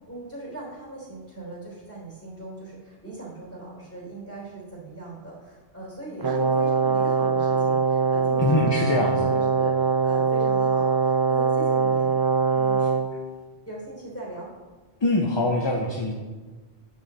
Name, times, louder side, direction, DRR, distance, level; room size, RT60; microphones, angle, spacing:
voice 1, 0.1-9.7 10.0-12.1 12.5-12.8 13.6-14.5, right 2 dB, 10° left, -5 dB, 3.4 m, -39 dB
Brass instrument, 6.2-13.1, right 5 dB, 35° right, 0.3 m, -22 dB
voice 2, 8.4-9.4 15.0-16.1, left 2 dB, 30° left, 0 dB, 0.6 m, -23 dB
9.5 x 7.6 x 4.2 m, 1.3 s
omnidirectional pair, 1.2 m